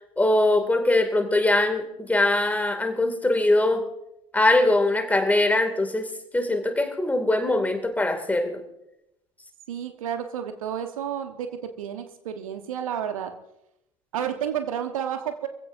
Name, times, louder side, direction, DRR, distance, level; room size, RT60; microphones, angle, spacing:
voice 1, 0.2-3.8 4.3-6.1 6.3-8.6, left 2 dB, 10° left, 6 dB, 2.6 m, -22 dB
voice 2, 9.7-13.3 14.1-15.5, right 9 dB, 70° right, 7 dB, 1.3 m, -31 dB
25.5 x 16.0 x 2.7 m, 0.86 s
figure-of-eight pair, 70°, 18 cm